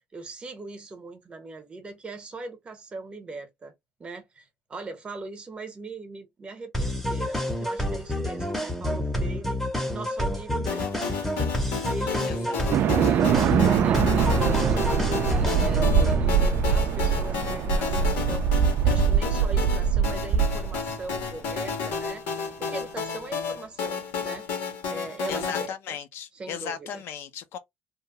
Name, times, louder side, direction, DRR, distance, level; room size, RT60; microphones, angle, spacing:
voice 1, 0.1-3.7 4.0-9.6 9.9-22.2 22.6-24.5 24.9-26.0 26.3-27.0, right 3 dB, 25° right, 0.8 m, -40 dB
sound 1, 6.7-16.3, left 1 dB, 5° left, 0.7 m, -29 dB
sound 2, 10.7-25.7, left 5 dB, 90° left, 1.4 m, -32 dB
voice 2, 12.3-12.7 25.3-27.6, left 8 dB, 65° left, 0.5 m, -36 dB
sound 3, 12.7-21.2, right 7 dB, 50° right, 0.4 m, -23 dB
2.8 x 2.2 x 2.7 m
cardioid pair, 130°, 4 cm